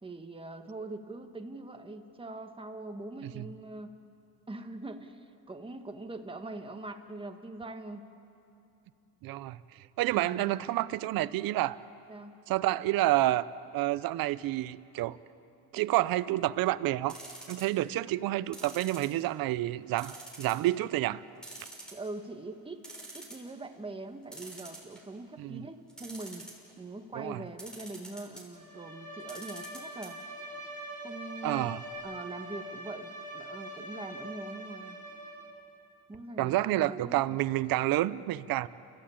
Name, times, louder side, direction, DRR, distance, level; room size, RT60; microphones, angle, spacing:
voice 1, 0.0-4.0 4.5-8.0 10.1-10.5 12.1-12.4 21.9-22.8 23.1-26.5 26.8-30.2 31.0-31.7 32.0-35.0 36.1-37.4, right 2 dB, 15° right, 5 dB, 1.6 m, -42 dB
voice 2, 9.2-9.6 10.0-11.8 12.5-13.4 13.7-15.2 15.7-17.1 17.5-21.2 25.4-25.6 27.1-27.4 31.4-31.8 36.4-38.7, right 16 dB, 70° right, 16 dB, 0.8 m, -29 dB
sound 1, 17.1-17.8 18.5-19.5 20.0-20.6 21.0-21.1 21.4-22.2 22.6-22.7 22.8-23.5 24.3-25.2 25.9-26.7 27.6-28.4 29.2-30.1 30.4-30.5 30.7-30.8, right 2 dB, ahead, 6.5 m, -46 dB
Bowed string instrument, 28.5-35.6, right 1 dB, 20° left, 7.9 m, -43 dB
29.0 x 15.5 x 8.7 m, 2.7 s
cardioid pair, 105°, 37 cm